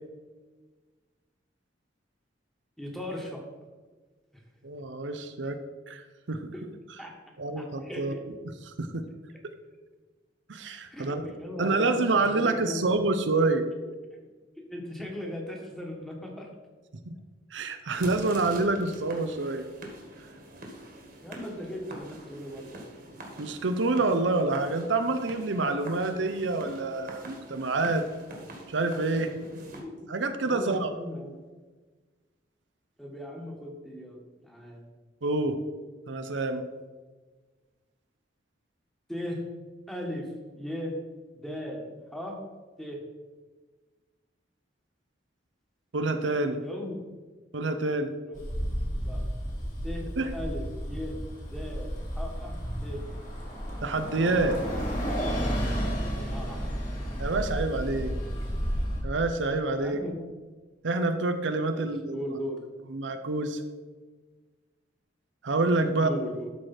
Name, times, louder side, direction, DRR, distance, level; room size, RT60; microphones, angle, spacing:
voice 1, 2.8-3.4 7.0-7.1 7.5-8.2 10.9-12.0 12.3-12.8 14.7-16.5 21.2-22.9 29.3-29.9 30.4-31.3 33.0-34.8 39.1-39.4 39.9-40.3 40.5-40.9 41.3-42.4 42.8-43.0 46.6-47.1 48.3-48.4 49.0-49.2 49.8-51.2 51.5-52.5 52.8-53.0 56.3-56.8 59.8-60.3 61.7-62.6 65.8-66.5, equal, ahead, 0 dB, 1.5 m, -38 dB
voice 2, 4.6-5.6 5.9-6.5 7.4-8.2 8.7-9.0 10.5-11.2 11.6-13.6 17.0-17.1 17.5-19.6 23.4-28.1 28.7-29.3 30.1-30.9 35.2-35.5 36.1-36.6 45.9-46.6 47.5-48.1 50.2-50.3 53.8-54.6 57.2-58.1 59.0-60.0 60.8-62.3 62.9-63.6 65.4-66.1, right 3 dB, 85° right, 8 dB, 0.7 m, -27 dB
sound 1, 17.9-29.8, right 1 dB, 55° right, 1.8 m, -45 dB
Bus, 48.3-59.0, equal, 50° left, 2.6 m, -32 dB
12.5 x 4.8 x 4.4 m, 1.3 s
head